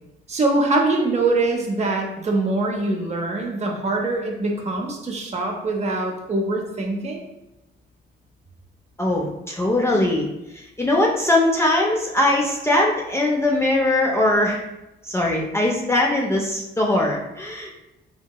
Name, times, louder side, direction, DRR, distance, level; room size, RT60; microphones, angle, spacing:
voice 1, 0.3-7.2, right 2 dB, 35° right, 1 dB, 0.6 m, -23 dB
voice 2, 9.0-10.3 10.5-14.6 15.0-17.7, left 1 dB, 15° left, -2 dB, 0.4 m, -21 dB
2.8 x 2.8 x 2.2 m, 0.93 s
cardioid pair, 90°, 20 cm